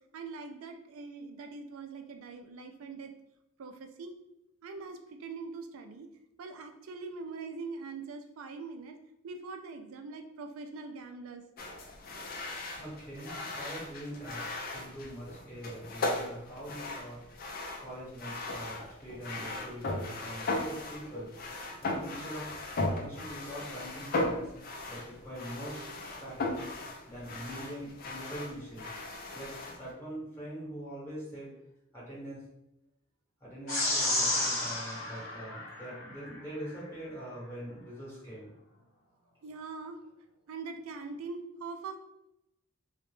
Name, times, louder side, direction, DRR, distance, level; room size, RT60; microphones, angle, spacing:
voice 1, 0.1-3.1 3.6-4.1 4.6-6.1 6.4-9.0 9.2-11.4 39.4-40.0 40.5-42.0, right 4 dB, 75° right, 6 dB, 0.3 m, -42 dB
sound 1, 11.6-29.9, left 2 dB, 45° left, 0.4 m, -37 dB
voice 2, 12.7-17.2 17.8-21.3 21.8-22.5 23.0-24.5 24.9-25.8 26.1-26.7 27.1-29.0 29.3-31.5 31.9-32.4 33.4-38.5, equal, 10° left, -8 dB, 1.0 m, -43 dB
sound 2, 33.7-36.3, left 1 dB, 70° left, 0.8 m, -31 dB
2.1 x 2.0 x 3.0 m, 0.84 s
head